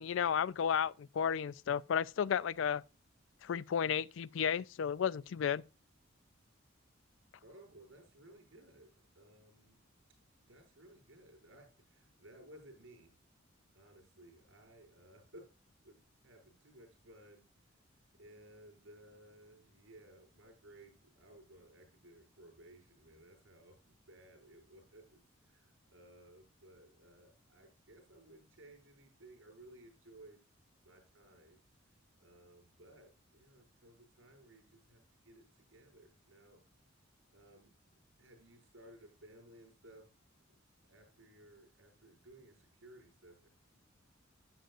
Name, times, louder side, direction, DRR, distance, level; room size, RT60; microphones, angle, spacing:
voice 1, 0.0-2.8 3.4-5.6, left 7 dB, 70° left, 0.4 m, -33 dB
voice 2, 7.4-9.8 10.5-13.1 13.7-15.4 15.8-17.8 18.2-30.4 30.8-31.6 32.2-36.6 37.3-37.7 38.2-40.1 40.9-43.5, right 1 dB, 75° right, 6.0 m, -59 dB
11.5 x 9.3 x 2.5 m
head